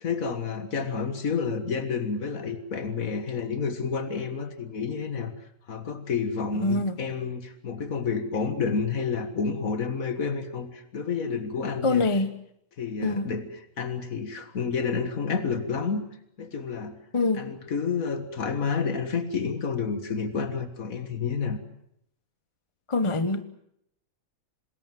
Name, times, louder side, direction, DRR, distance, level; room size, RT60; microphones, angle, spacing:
voice 1, 0.0-12.0 12.8-13.5 13.8-16.0 16.4-17.0 17.4-21.6, left 5 dB, 90° left, 2.1 m, -30 dB
voice 2, 6.6-7.0 11.8-12.4 13.0-13.3 17.1-17.6 22.9-23.4, left 2 dB, 25° left, 1.0 m, -25 dB
27.0 x 20.5 x 7.6 m
omnidirectional pair, 1.4 m